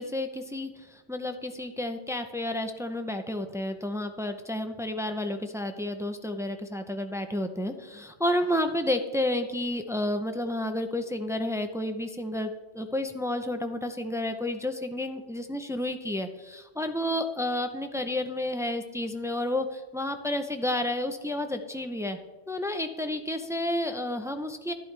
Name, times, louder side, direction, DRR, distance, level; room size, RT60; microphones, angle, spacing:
voice 1, 0.0-22.2 22.5-24.7, left 1 dB, 5° right, 6 dB, 0.4 m, -31 dB
11.5 x 11.5 x 3.3 m, 1.2 s
omnidirectional pair, 1.2 m